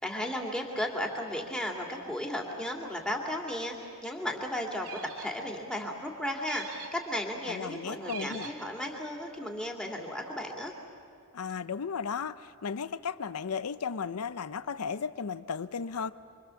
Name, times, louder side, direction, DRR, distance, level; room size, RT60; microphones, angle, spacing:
voice 1, 0.0-3.7 4.0-4.9 5.2-10.7, left 1 dB, 5° left, 0 dB, 2.5 m, -34 dB
sound 1, 4.8-5.5 6.4-7.1 8.0-8.7, right 7 dB, 75° right, 2.6 m, -43 dB
voice 2, 7.5-8.5 11.3-16.1, left 6 dB, 80° left, 15 dB, 0.6 m, -35 dB
28.5 x 24.0 x 7.0 m, 2.4 s
head